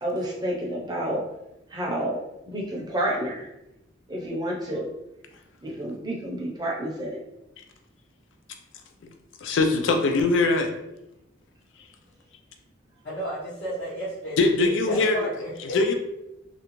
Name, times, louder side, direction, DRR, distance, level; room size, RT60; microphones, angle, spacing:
voice 1, 0.0-1.2 1.7-2.2 2.5-3.5 4.1-4.9 5.6-7.2, right 1 dB, 20° right, -3 dB, 0.6 m, -29 dB
voice 2, 9.4-10.7 14.4-15.3 15.7-15.9, left 3 dB, 70° left, 5 dB, 0.4 m, -21 dB
voice 3, 13.0-15.8, equal, 55° left, -9 dB, 0.8 m, -33 dB
3.2 x 2.5 x 3.0 m, 0.90 s
head